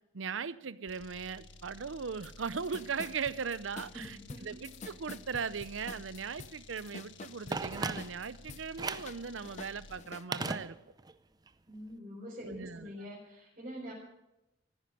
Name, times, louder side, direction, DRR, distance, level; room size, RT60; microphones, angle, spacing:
voice 1, 0.1-4.2 4.4-10.8 12.4-12.9, right 6 dB, 85° right, 0.6 m, -38 dB
sound 1, 0.9-10.1, left 3 dB, 80° left, 1.4 m, -54 dB
sound 2, 2.2-2.3 2.6-8.6 8.9-10.6, left 4 dB, 40° left, 0.5 m, -47 dB
voice 2, 3.9-4.6 11.7-13.9, equal, 40° right, 4.0 m, -45 dB
Telephone, 7.5-8.4 8.8-9.2 10.3-11.2 11.5-11.6, right 3 dB, 20° right, 0.6 m, -37 dB
14.5 x 10.5 x 7.7 m
head